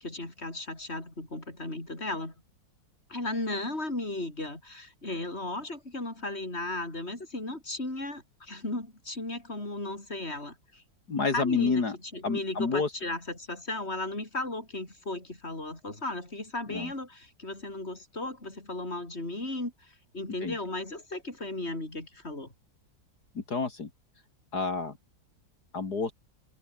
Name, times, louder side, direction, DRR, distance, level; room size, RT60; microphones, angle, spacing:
voice 1, 0.0-2.3 3.1-10.8 11.3-22.5, left 2 dB, 35° left, 7.1 m, -35 dB
voice 2, 11.1-12.0 12.2-12.9 16.7-16.9 20.4-20.5 23.3-23.9 24.5-25.0 25.7-26.1, left 4 dB, 60° left, 3.3 m, -29 dB
open air
omnidirectional pair, 2.0 m